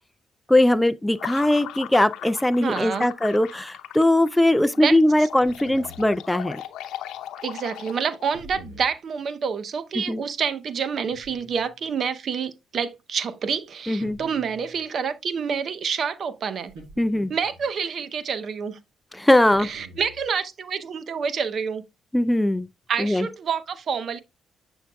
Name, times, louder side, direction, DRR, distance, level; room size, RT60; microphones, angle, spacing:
voice 1, 0.5-6.6 10.1-10.2 13.9-14.2 17.0-17.3 19.1-19.7 22.1-22.7 23.0-23.3, left 1 dB, 5° left, 0.4 m, -20 dB
sound 1, 1.2-8.4, left 12 dB, 85° left, 0.7 m, -38 dB
voice 2, 2.6-3.1 4.8-4.9 7.4-16.7 17.3-18.8 19.6-21.8 22.9-24.2, right 6 dB, 55° right, 0.7 m, -28 dB
sound 2, 5.3-6.1 8.3-8.9 11.1-11.9 14.0-14.9 16.7-17.7 19.5-20.3, right 1 dB, 85° right, 4.5 m, -45 dB
7.6 x 6.3 x 2.3 m
cardioid pair, 90°, 0 cm